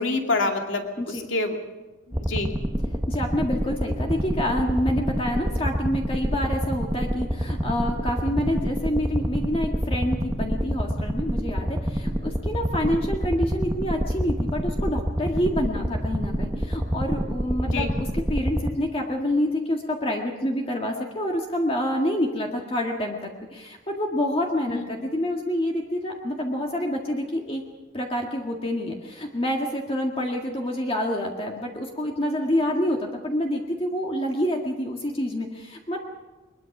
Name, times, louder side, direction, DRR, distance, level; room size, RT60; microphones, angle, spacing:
voice 1, 0.0-1.6 2.1-2.5 17.7-17.9 24.7-24.9, left 3 dB, 75° left, 3 dB, 2.5 m, -27 dB
voice 2, 1.0-1.3 3.1-27.6 27.9-36.0, left 1 dB, 30° left, 1 dB, 1.9 m, -27 dB
sound 1, 2.1-18.7, equal, 15° right, 1.2 m, -27 dB
22.5 x 21.5 x 6.0 m, 1.1 s
head